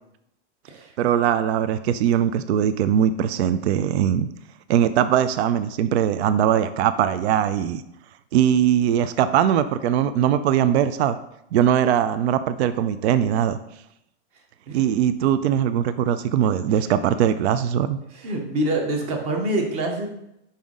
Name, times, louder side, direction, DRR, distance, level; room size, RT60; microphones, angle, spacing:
voice 1, 1.0-4.3 4.7-7.8 8.3-11.2 11.5-13.6 14.7-18.0, right 10 dB, 65° right, 12 dB, 0.5 m, -21 dB
voice 2, 18.1-20.1, right 1 dB, 20° right, 3 dB, 0.6 m, -26 dB
5.7 x 5.2 x 3.6 m, 0.82 s
supercardioid pair, 175°, 35 cm